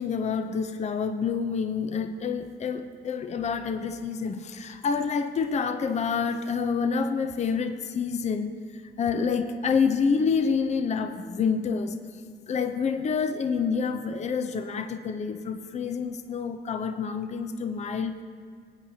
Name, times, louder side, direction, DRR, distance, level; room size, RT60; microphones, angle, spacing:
voice 1, 0.0-12.0 12.5-18.2, left 5 dB, 35° left, 8 dB, 0.5 m, -28 dB
19.5 x 8.7 x 2.8 m, 2.1 s
cardioid pair, 90°, 20 cm